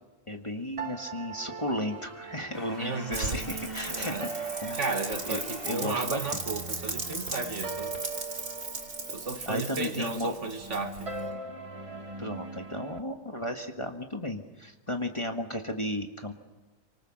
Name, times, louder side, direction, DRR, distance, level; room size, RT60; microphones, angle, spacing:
voice 1, 0.3-4.2 4.6-4.9 5.3-6.4 9.4-10.3 12.2-16.3, left 1 dB, 20° left, 1.6 m, -34 dB
sound 1, 0.8-13.0, right 4 dB, 25° right, 1.2 m, -41 dB
sound 2, 2.5-8.7, left 3 dB, 40° left, 2.7 m, -48 dB
voice 2, 2.8-3.4 3.9-4.3 4.8-8.0 9.1-11.1, right 3 dB, 55° right, 1.8 m, -34 dB
Rain, 3.1-11.2, right 3 dB, 85° right, 3.8 m, -37 dB
28.0 x 25.0 x 6.5 m
omnidirectional pair, 1.5 m